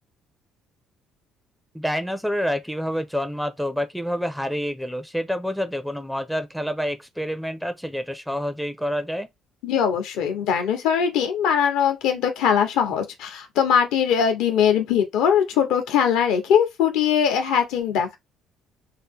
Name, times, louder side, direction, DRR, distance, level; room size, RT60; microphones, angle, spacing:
voice 1, 1.7-9.3, equal, ahead, 0.4 m, -28 dB
voice 2, 9.6-18.2, left 8 dB, 80° left, 0.9 m, -21 dB
2.6 x 2.0 x 3.5 m
cardioid pair, 90°, 0 cm